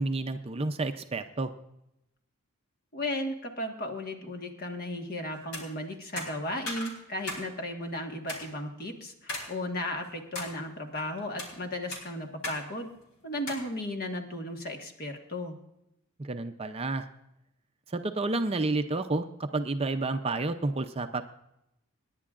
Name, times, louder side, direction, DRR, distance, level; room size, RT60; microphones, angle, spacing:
voice 1, 0.0-1.5 16.2-17.1 17.9-21.2, right 2 dB, 25° right, 7 dB, 0.5 m, -30 dB
voice 2, 2.9-12.9 13.2-15.6, left 1 dB, 45° left, 4 dB, 1.5 m, -35 dB
sound 1, 5.4-5.6 6.2-7.5 7.8-7.9 8.3-8.4 9.3-9.5 9.9-10.5 11.2-11.5 11.9-12.6 12.9-13.0 13.5-13.7, left 2 dB, 70° left, 3.5 m, -37 dB
26.0 x 10.5 x 2.5 m, 0.84 s
head